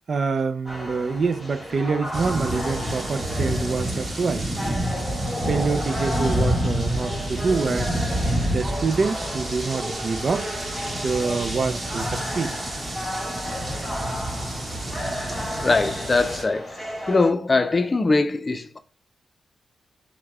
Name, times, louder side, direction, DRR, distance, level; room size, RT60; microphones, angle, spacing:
voice 1, 0.1-4.5 5.4-8.0 8.5-10.5 10.9-12.6, right 4 dB, 55° right, 0.4 m, -26 dB
sound 1, 0.7-17.3, left 1 dB, 5° left, 1.7 m, -33 dB
sound 2, 2.1-16.4, right 1 dB, 40° right, 1.2 m, -28 dB
voice 2, 15.6-16.8 17.1-18.8, left 3 dB, 35° left, 0.5 m, -21 dB
5.5 x 2.2 x 3.4 m
cardioid pair, 65°, 0 cm